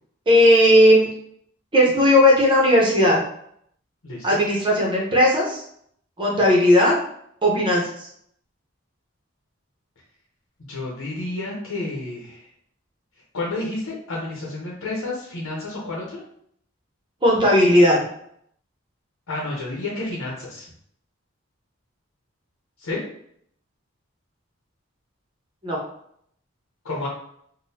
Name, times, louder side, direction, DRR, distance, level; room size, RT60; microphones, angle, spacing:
voice 1, 0.3-1.1 1.7-3.2 4.2-5.6 6.2-6.9 7.4-8.1 17.2-18.0 25.6-25.8, left 1 dB, 25° right, -3 dB, 0.8 m, -16 dB
voice 2, 4.0-4.4 10.7-12.4 13.3-16.2 19.3-20.6 22.8-23.0 26.8-27.1, left 2 dB, 85° left, -4 dB, 0.8 m, -30 dB
3.7 x 2.2 x 2.7 m, 0.68 s
head